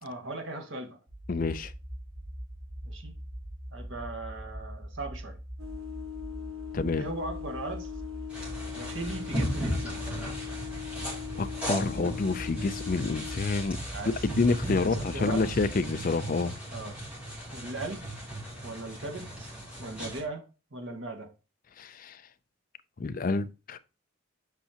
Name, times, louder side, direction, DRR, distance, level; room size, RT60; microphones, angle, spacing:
voice 1, 0.0-1.0 2.8-3.1 3.7-5.4 6.9-7.9 8.7-10.0 13.9-14.1 14.7-15.4 16.7-17.0 17.5-18.0 18.6-19.5 19.8-20.4 20.7-21.3, right 2 dB, 70° right, 1.8 m, -38 dB
sound 1, 1.1-15.9, right 1 dB, 35° right, 3.0 m, -42 dB
voice 2, 1.3-1.7 6.7-7.0 11.4-13.8 14.1-16.5 21.8-22.2 23.0-23.8, left 3 dB, 45° left, 0.4 m, -28 dB
sound 2, 5.6-13.4, left 10 dB, 85° right, 1.2 m, -40 dB
sound 3, 8.3-20.2, right 1 dB, 5° right, 3.4 m, -37 dB
8.3 x 5.5 x 2.8 m
head